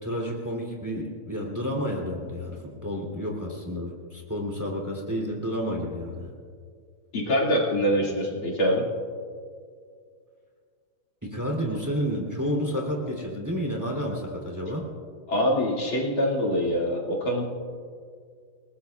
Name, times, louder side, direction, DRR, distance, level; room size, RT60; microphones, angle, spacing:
voice 1, 0.0-6.3 8.1-8.2 11.2-14.8, equal, 10° right, -1 dB, 2.8 m, -30 dB
voice 2, 7.1-8.9 15.3-17.4, equal, 65° left, -3 dB, 3.1 m, -24 dB
29.0 x 19.0 x 2.4 m, 2.1 s
omnidirectional pair, 2.4 m